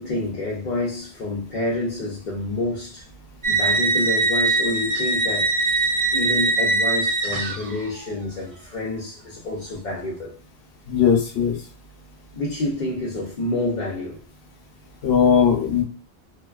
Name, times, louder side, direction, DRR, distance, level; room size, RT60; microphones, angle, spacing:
voice 1, 0.0-3.0 3.5-10.3 12.3-14.2, left 2 dB, 55° left, 0.7 m, -28 dB
sound 1, 3.4-7.9, right 2 dB, 50° right, 0.6 m, -22 dB
voice 2, 10.9-11.5 15.0-15.8, left 7 dB, 90° left, 1.0 m, -18 dB
2.5 x 2.2 x 2.3 m
omnidirectional pair, 1.0 m